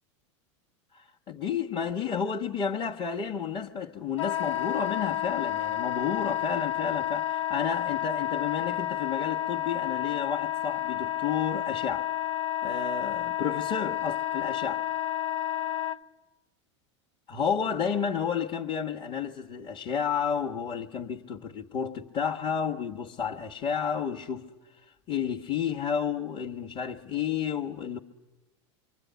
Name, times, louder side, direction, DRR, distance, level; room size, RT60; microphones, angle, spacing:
voice 1, 0.9-12.1 12.6-14.8 17.3-24.5 24.8-28.0, left 7 dB, 30° left, 1.3 m, -31 dB
Wind instrument woodwind instrument, 4.2-16.0, left 12 dB, 90° left, 0.8 m, -30 dB
25.5 x 24.0 x 9.3 m
hypercardioid pair, 105°, 15 cm